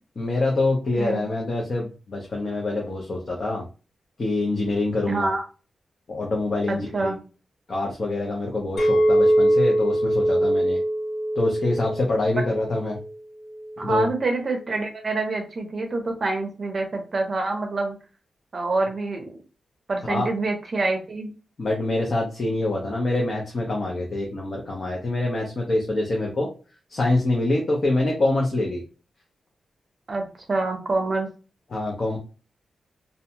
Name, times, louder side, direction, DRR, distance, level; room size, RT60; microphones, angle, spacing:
voice 1, 0.2-3.7 4.2-5.3 6.1-7.1 7.7-10.8 11.4-13.0 13.8-14.1 20.1-20.3 21.6-26.5 26.9-28.8 31.7-32.2, left 2 dB, 40° left, -1 dB, 0.6 m, -25 dB
voice 2, 1.0-1.3 5.1-5.4 6.7-7.2 13.8-18.0 18.5-19.4 19.9-21.3 30.1-31.3, right 3 dB, 40° right, 3 dB, 0.6 m, -26 dB
Chink clink, 8.8-13.1 13.6-13.9, right 1 dB, 60° left, 0.9 m, -22 dB
2.6 x 2.1 x 2.8 m, 0.34 s
wide cardioid pair, 150°, 0 cm